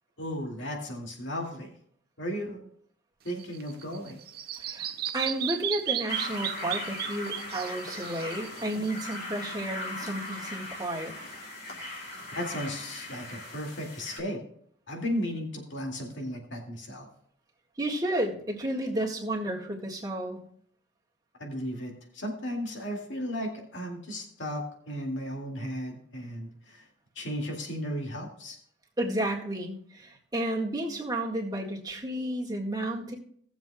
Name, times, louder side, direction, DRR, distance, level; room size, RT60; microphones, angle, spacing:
voice 1, 0.2-1.8 2.2-2.7 3.2-4.2 12.3-14.4 14.9-17.1 21.4-26.9 27.2-28.6, equal, 90° left, 1 dB, 2.3 m, -35 dB
Bird vocalization bird call bird song, 3.3-9.2, right 11 dB, 55° right, 0.6 m, -35 dB
voice 2, 4.5-11.2 17.8-20.4 29.0-33.2, right 1 dB, 20° right, -2 dB, 1.7 m, -32 dB
sound 1, 6.1-14.2, left 1 dB, 50° left, 3.0 m, -39 dB
18.0 x 7.2 x 2.3 m, 0.63 s
head